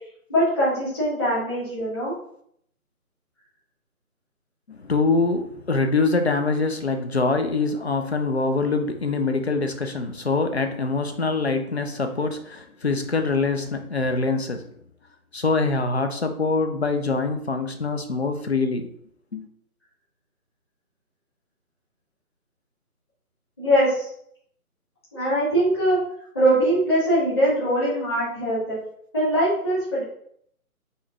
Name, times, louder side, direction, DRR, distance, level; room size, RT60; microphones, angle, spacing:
voice 1, 0.3-2.1 23.6-24.1 25.1-26.0 26.3-28.8 29.1-30.0, right 1 dB, 15° left, -10 dB, 1.5 m, -22 dB
voice 2, 4.7-14.7 15.3-18.9 19.3-19.5, left 3 dB, 45° left, 6 dB, 0.5 m, -24 dB
4.5 x 3.1 x 3.4 m, 0.66 s
hypercardioid pair, 175°, 45 cm